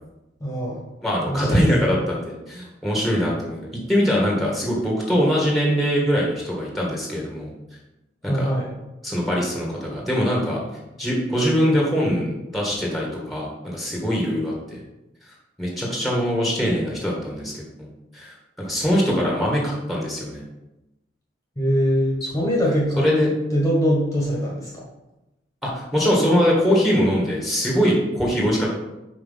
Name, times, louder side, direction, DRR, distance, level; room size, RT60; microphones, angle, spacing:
voice 1, 0.4-0.9 1.3-1.6 8.3-8.7 21.6-23.1 23.5-24.8, equal, 20° left, -4 dB, 1.6 m, -22 dB
voice 2, 1.0-3.6 3.9-7.5 8.2-8.5 9.0-10.6 11.0-14.8 15.6-17.6 18.1-20.4 22.2-22.5 23.0-23.3 25.6-28.7, equal, ahead, -3 dB, 1.8 m, -22 dB
5.8 x 4.9 x 5.7 m, 0.96 s
head